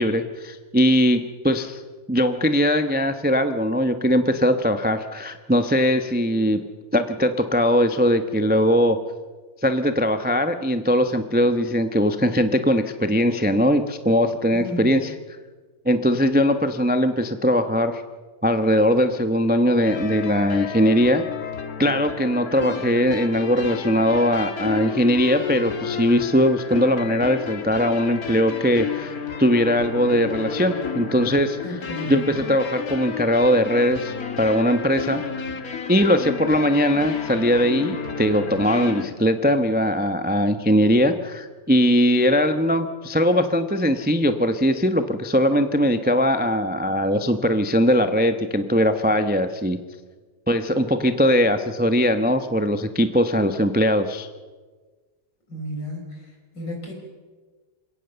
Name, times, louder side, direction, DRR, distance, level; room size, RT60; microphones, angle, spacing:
voice 1, 0.0-1.8 2.1-6.6 6.9-9.0 9.6-15.1 15.8-18.0 18.4-21.2 21.8-29.1 29.4-35.2 35.9-49.8 50.5-54.3, equal, 10° right, 8 dB, 0.6 m, -20 dB
voice 2, 14.5-14.9 31.6-32.3 55.5-56.1 56.5-56.9, equal, 70° left, 2 dB, 5.5 m, -32 dB
sound 1, 19.8-39.1, left 6 dB, 50° left, 1.9 m, -32 dB
27.0 x 17.0 x 6.9 m, 1.3 s
omnidirectional pair, 2.0 m